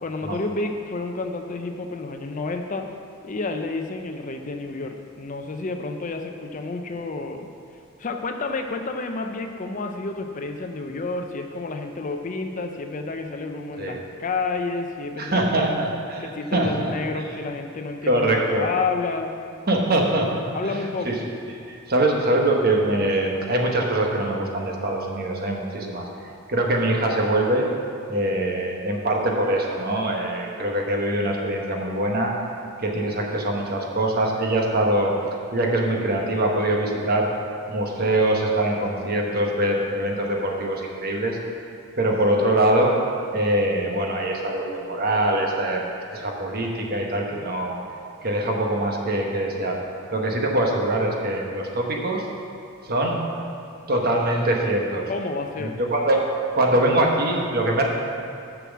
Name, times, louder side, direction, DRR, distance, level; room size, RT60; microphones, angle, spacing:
voice 1, 0.0-2.9 3.2-7.5 8.0-15.8 16.2-19.3 20.5-21.2 55.1-55.8, left 3 dB, 35° left, 5 dB, 0.5 m, -30 dB
voice 2, 15.2-16.9 18.0-18.6 19.7-20.8 21.0-21.1 21.7-26.1 26.5-27.6 28.1-32.3 32.8-35.1 35.5-37.3 37.7-41.4 42.0-42.9 43.3-45.8 46.1-47.7 48.2-49.8 50.1-52.3 52.8-53.2 53.9-55.1 55.6-56.2 56.5-57.9, right 1 dB, 45° right, 0 dB, 1.2 m, -23 dB
6.8 x 6.0 x 7.3 m, 2.5 s
head